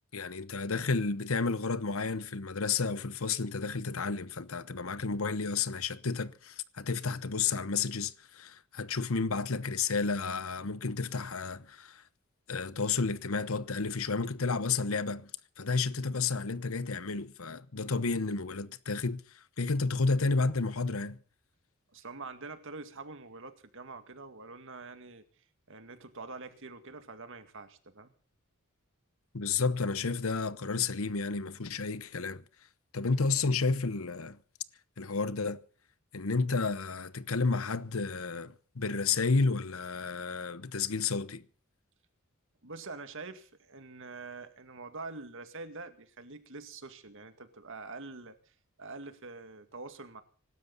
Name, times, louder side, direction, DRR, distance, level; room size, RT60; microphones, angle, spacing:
voice 1, 0.1-12.0 12.5-15.3 15.6-21.2 29.3-32.4 32.9-34.4 35.0-35.6 36.1-41.4, left 4 dB, 70° left, 1.0 m, -31 dB
voice 2, 21.9-25.3 25.7-28.1 42.6-50.2, right 3 dB, 65° right, 2.1 m, -45 dB
25.0 x 13.0 x 4.1 m
head